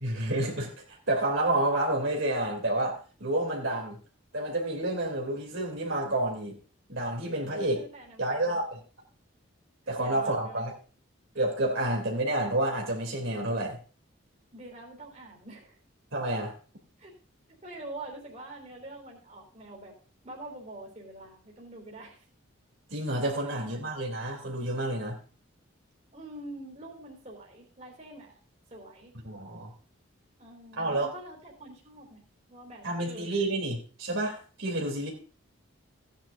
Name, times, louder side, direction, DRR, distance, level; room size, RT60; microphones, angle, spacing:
voice 1, 0.0-4.0 4.3-6.6 6.9-7.8 8.2-8.8 9.9-10.7 11.3-13.8 16.1-16.5 22.9-25.2 29.2-29.7 30.8-31.1 32.8-35.1, right 1 dB, 70° right, 0 dB, 3.1 m, -29 dB
voice 2, 7.7-8.6 10.0-10.6 14.5-15.8 17.0-17.1 17.6-20.0 20.2-22.2 23.4-23.9 26.1-28.4 28.7-29.1 30.4-33.4, right 2 dB, 35° right, 0 dB, 3.5 m, -45 dB
16.5 x 10.0 x 2.6 m, 0.39 s
head